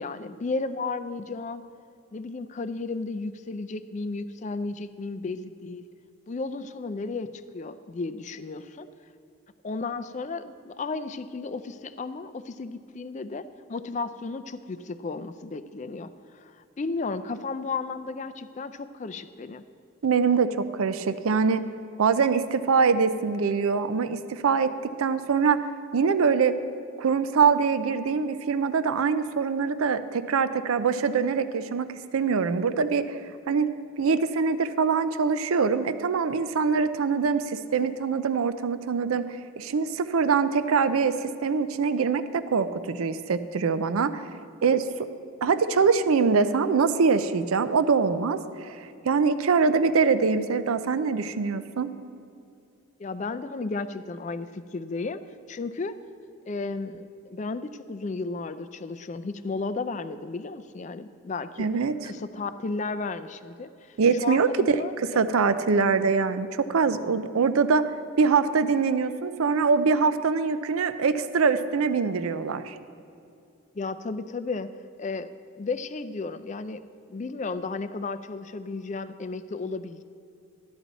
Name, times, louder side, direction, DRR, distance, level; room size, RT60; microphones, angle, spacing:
voice 1, 0.0-1.6 2.1-5.9 6.3-8.9 9.6-19.6 53.0-55.2 55.5-56.0 56.5-61.7 62.0-64.0 64.2-65.3 73.7-76.8 77.1-80.0, left 3 dB, 35° left, 11 dB, 0.4 m, -34 dB
voice 2, 20.0-21.6 22.0-24.7 25.0-25.6 25.9-26.5 27.0-33.2 33.5-33.7 34.0-39.3 39.6-44.2 44.6-45.1 45.4-48.8 49.1-51.9 61.6-62.1 64.0-67.9 68.2-72.8, right 5 dB, 80° right, 12 dB, 0.5 m, -24 dB
13.5 x 10.5 x 4.0 m, 2.6 s
head